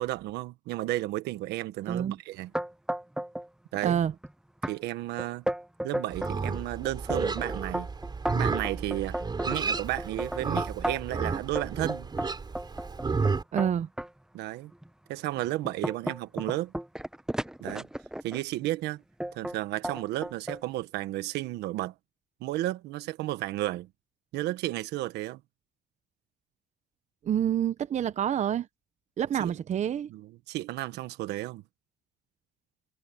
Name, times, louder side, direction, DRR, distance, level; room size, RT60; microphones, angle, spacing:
voice 1, 0.0-2.5 3.7-4.0 4.7-5.4 5.8-7.9 8.3-9.2 9.5-12.1 14.3-14.7 15.1-16.7 17.6-17.9 18.2-19.0 19.3-21.9 22.4-23.9 24.3-25.4 29.4-29.6 30.1-31.6, right 16 dB, 85° right, 1.4 m, -33 dB
voice 2, 1.9-2.2 3.8-4.1 13.5-13.9 27.2-28.7 29.2-30.1, right 9 dB, 45° right, 0.8 m, -27 dB
sound 1, 2.5-3.5 3.7-4.3 4.6-4.8 5.2-6.4 6.8-11.2 11.6-14.1 14.7-14.9 15.3-18.4 19.2-19.6 19.8-20.6, right 1 dB, 5° right, 1.0 m, -34 dB
Livestock farm animals working animals, 6.1-13.4, right 4 dB, 25° right, 4.0 m, -32 dB
cardioid pair, 110°, 17 cm